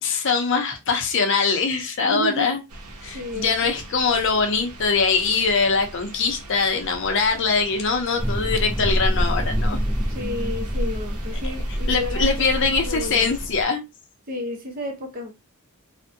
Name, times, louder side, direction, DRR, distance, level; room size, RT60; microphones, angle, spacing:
voice 1, 0.0-2.6 3.0-9.8 11.9-13.8, left 4 dB, 55° left, 0.5 m, -22 dB
voice 2, 2.0-2.5 3.1-3.7 10.1-13.3 14.3-15.3, left 1 dB, 40° right, 0.6 m, -31 dB
sound 1, 2.7-13.5, right 1 dB, 80° right, 0.6 m, -41 dB
sound 2, 8.2-13.6, equal, 5° right, 0.3 m, -26 dB
2.5 x 2.1 x 2.5 m
head